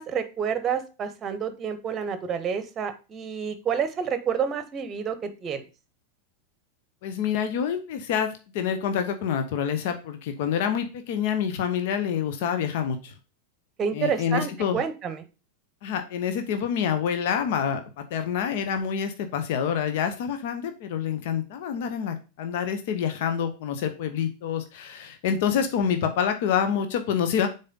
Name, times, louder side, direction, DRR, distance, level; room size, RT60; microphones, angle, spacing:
voice 1, 0.0-5.6 13.8-15.2, right 7 dB, 25° right, 11 dB, 0.9 m, -29 dB
voice 2, 7.0-8.3 8.5-13.1 13.9-14.8 15.8-17.8 18.1-27.5, left 8 dB, 50° left, 8 dB, 0.9 m, -27 dB
6.6 x 4.2 x 3.8 m, 0.31 s
figure-of-eight pair, 90°, 0 cm